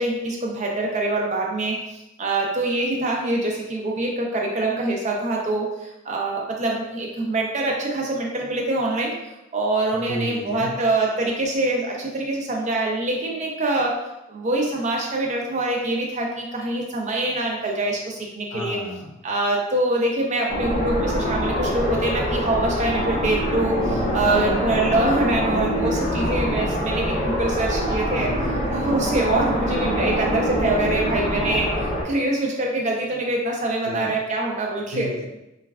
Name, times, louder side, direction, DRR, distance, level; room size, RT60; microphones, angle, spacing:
voice 1, 0.0-9.2 9.5-18.8 19.2-23.8 24.1-28.3 28.7-35.1, right 2 dB, 35° right, -1 dB, 0.5 m, -24 dB
voice 2, 10.1-10.7 18.5-19.2 23.8-24.5 28.2-28.7 33.8-34.2 34.9-35.3, left 2 dB, 90° left, 2 dB, 0.5 m, -33 dB
sound 1, 20.5-32.0, equal, 30° left, 0.5 m, -24 dB
3.1 x 2.3 x 2.3 m, 0.92 s
head